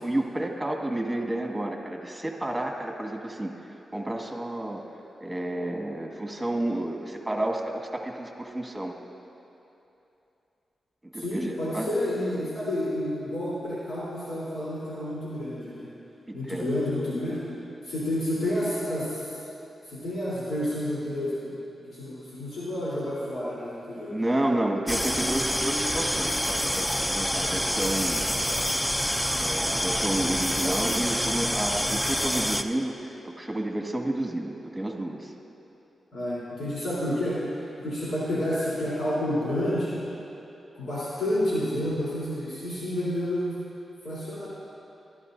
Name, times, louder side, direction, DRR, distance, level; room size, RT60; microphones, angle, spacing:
voice 1, 0.0-3.5 3.9-4.8 5.2-8.9 11.1-12.0 16.5-16.6 24.1-28.2 29.4-35.3, right 1 dB, 10° right, 1 dB, 1.9 m, -30 dB
voice 2, 11.1-15.9 16.3-17.4 17.8-19.4 19.9-21.5 21.9-24.1 36.1-37.4 37.8-40.0 40.8-43.5 44.0-44.5, left 1 dB, 75° left, -10 dB, 3.8 m, -29 dB
sound 1, 24.9-32.6, equal, 10° left, 0.5 m, -27 dB
24.0 x 13.0 x 2.7 m, 2.8 s
cardioid pair, 85°, 0 cm